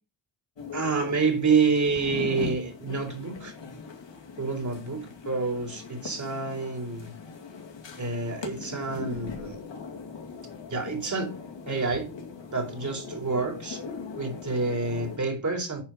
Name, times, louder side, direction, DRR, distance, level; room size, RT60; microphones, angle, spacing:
sound 1, 0.6-15.2, left 5 dB, 60° left, 2.4 m, -40 dB
voice 1, 0.7-3.5 4.4-7.1 8.0-9.6 10.7-11.3 11.7-12.1 12.5-13.8 14.2-15.8, right 4 dB, 35° right, 3.8 m, -28 dB
10.5 x 4.5 x 5.0 m
cardioid pair, 95°, 48 cm